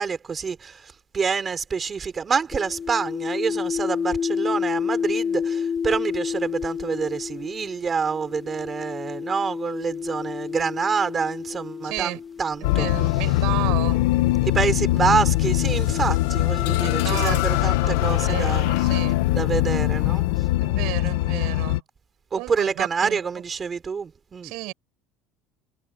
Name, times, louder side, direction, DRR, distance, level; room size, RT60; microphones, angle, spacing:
voice 1, 0.0-12.9 14.4-18.7 19.3-20.3 22.3-24.5, right 6 dB, 20° right, 4.1 m, -27 dB
sound 1, 2.5-12.9 13.8-17.5, left 6 dB, 15° left, 2.0 m, -31 dB
voice 2, 11.8-12.2 12.6-14.0 16.8-19.2 20.6-21.8 22.4-23.2 24.4-24.7, right 22 dB, 60° right, 7.7 m, -32 dB
sound 2, 12.6-21.8, left 17 dB, 85° left, 1.1 m, -22 dB
cardioid pair, 160°, 0 cm